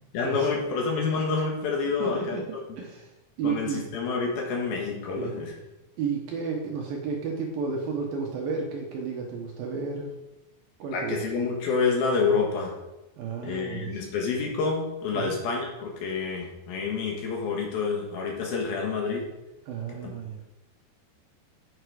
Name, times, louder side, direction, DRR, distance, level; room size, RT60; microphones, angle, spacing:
voice 1, 0.1-2.6 3.4-5.6 10.9-12.7 13.4-19.3 20.0-20.1, left 4 dB, 65° left, 0 dB, 2.9 m, -28 dB
voice 2, 2.0-3.1 3.4-3.9 5.2-5.4 6.0-10.1 10.8-11.2 13.2-14.0 15.1-15.4 19.7-20.4, right 5 dB, 70° right, 0 dB, 2.5 m, -32 dB
8.9 x 6.5 x 4.8 m, 0.96 s
omnidirectional pair, 5.1 m